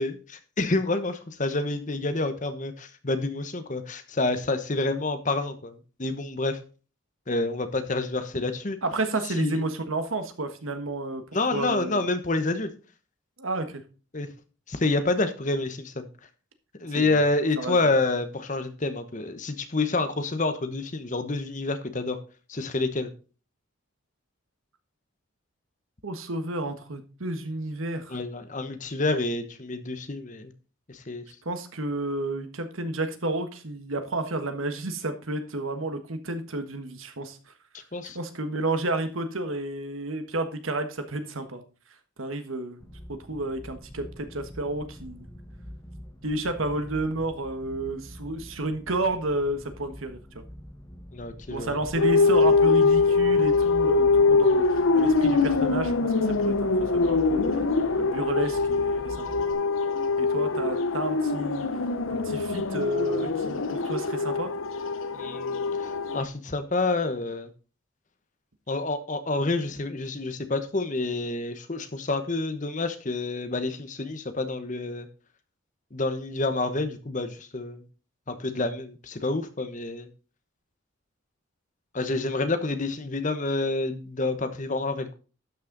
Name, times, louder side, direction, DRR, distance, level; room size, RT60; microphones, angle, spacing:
voice 1, 0.0-6.6 7.3-8.8 9.3-9.6 11.3-12.7 14.1-14.3 14.7-16.1 16.8-22.2 22.5-23.1 28.1-30.5 30.9-31.2 37.9-38.2 51.1-51.8 65.1-67.5 68.7-75.1 75.9-77.8 78.3-80.1 81.9-85.1, left 2 dB, 40° left, 1.1 m, -28 dB
voice 2, 8.8-11.2 11.5-12.0 13.4-13.8 16.9-17.2 17.6-17.8 26.0-28.2 31.4-37.4 38.0-41.6 42.2-42.8 43.1-45.3 46.2-50.4 51.5-57.6 57.9-59.3 60.2-61.7 62.1-64.5, right 2 dB, 80° right, 1.5 m, -31 dB
sound 1, 42.8-59.5, equal, 15° left, 1.4 m, -44 dB
sound 2, 52.0-66.2, left 4 dB, 80° left, 0.8 m, -23 dB
12.0 x 6.4 x 3.9 m
head